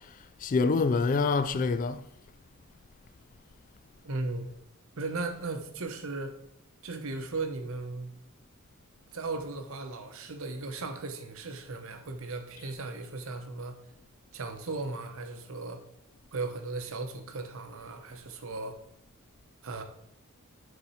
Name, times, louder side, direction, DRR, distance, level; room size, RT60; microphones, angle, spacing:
voice 1, 0.4-2.0, left 4 dB, 35° left, 0.3 m, -26 dB
voice 2, 4.0-4.5 5.0-6.4 6.8-8.1 9.1-13.8 14.3-15.8 16.3-18.8 19.6-19.8, right 3 dB, 65° right, 0.9 m, -36 dB
7.0 x 4.2 x 5.6 m
head